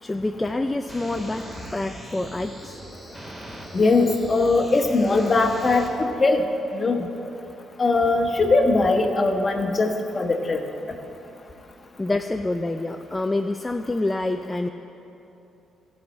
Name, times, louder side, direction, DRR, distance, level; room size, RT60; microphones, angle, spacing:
voice 1, 0.0-2.8 12.0-14.7, left 2 dB, 15° left, 5 dB, 0.4 m, -27 dB
sound 1, 0.9-5.9, right 1 dB, 15° right, 2.3 m, -40 dB
voice 2, 3.7-6.4 6.7-7.1 7.8-10.6, left 3 dB, 35° left, 4 dB, 1.2 m, -20 dB
12.0 x 5.6 x 8.7 m, 3.0 s
cardioid pair, 90°, 0 cm